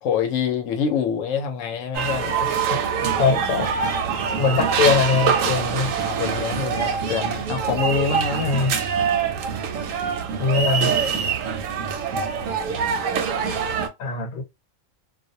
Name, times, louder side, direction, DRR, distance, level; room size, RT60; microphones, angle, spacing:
voice 1, 0.0-2.4 6.0-8.7, left 6 dB, 80° left, 0.9 m, -26 dB
sound 1, 1.9-13.9, right 6 dB, 85° right, 1.0 m, -24 dB
voice 2, 2.5-2.8 3.2-3.7 4.3-6.0 8.4-8.7 10.4-11.0 14.0-14.4, left 5 dB, 45° left, 0.7 m, -22 dB
2.4 x 2.0 x 2.6 m
omnidirectional pair, 1.3 m